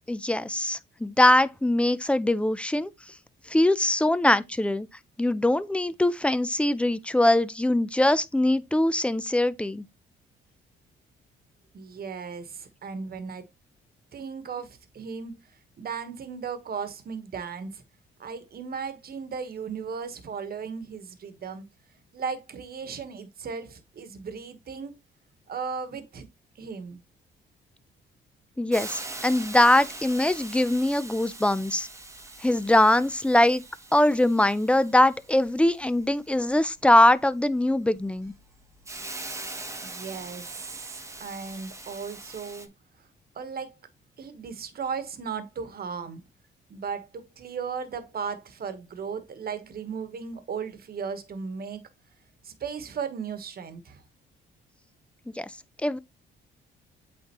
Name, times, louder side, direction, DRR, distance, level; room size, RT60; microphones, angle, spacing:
voice 1, 0.1-2.9 3.5-4.9 5.2-9.8 28.6-31.9 32.4-33.6 33.9-38.3 55.4-55.5 55.8-56.0, left 1 dB, 5° left, 0.5 m, -22 dB
voice 2, 11.7-13.5 14.1-15.3 15.8-17.8 18.2-21.6 22.1-24.9 25.5-26.3 26.6-27.0 39.8-42.7 43.3-43.7 44.2-46.2 46.7-51.8 52.4-54.0, right 6 dB, 50° right, 1.3 m, -36 dB
Hiss, 28.7-42.7, right 2 dB, 15° right, 1.1 m, -42 dB
8.5 x 3.7 x 3.0 m
cardioid pair, 90°, 20 cm